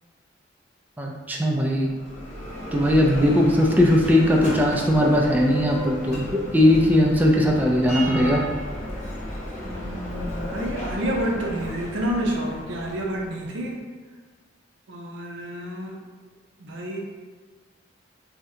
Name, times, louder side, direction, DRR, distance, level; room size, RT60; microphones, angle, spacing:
voice 1, 1.0-1.9 2.7-6.3 6.5-8.4, left 1 dB, 10° right, -1 dB, 0.3 m, -19 dB
Bell, 1.7-13.6, equal, 40° left, 0.8 m, -34 dB
voice 2, 9.6-13.8 14.9-16.0 16.6-17.0, right 1 dB, 75° right, 0 dB, 0.5 m, -29 dB
2.7 x 2.2 x 3.6 m, 1.4 s
head